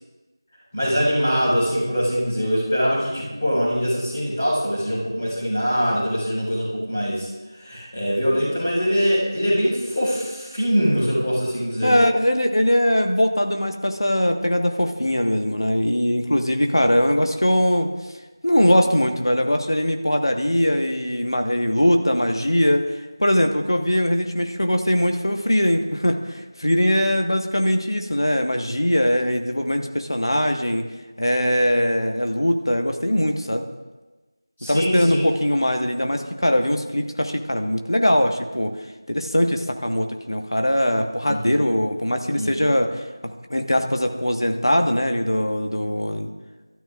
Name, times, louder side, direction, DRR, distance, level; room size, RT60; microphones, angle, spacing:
voice 1, 0.7-7.3 7.6-12.0 34.6-35.2 41.3-41.5 42.4-42.5, equal, 15° left, -9 dB, 3.9 m, -23 dB
voice 2, 11.8-17.9 18.4-30.9 31.2-33.6 34.7-38.8 39.1-46.3, equal, 80° left, 5 dB, 1.4 m, -21 dB
27.0 x 13.0 x 2.5 m, 1.2 s
figure-of-eight pair, 180°, 2 cm